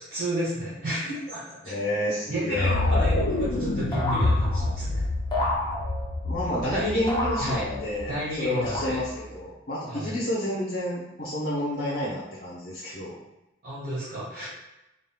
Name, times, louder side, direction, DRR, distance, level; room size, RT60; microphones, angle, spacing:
voice 1, 0.0-1.7 2.3-5.0 6.7-7.0 7.4-7.7 8.1-9.0 9.9-10.1 13.6-14.5, right 1 dB, 50° right, -12 dB, 1.5 m, -32 dB
voice 2, 1.6-2.7 6.2-13.1, left 1 dB, 55° left, -6 dB, 0.8 m, -30 dB
sound 1, 2.5-8.6, left 2 dB, 85° left, 0.4 m, -27 dB
sound 2, 3.9-4.9 5.3-6.3 7.1-8.1 8.6-9.4, left 1 dB, 25° left, 0.6 m, -31 dB
3.7 x 3.7 x 2.3 m, 0.92 s
head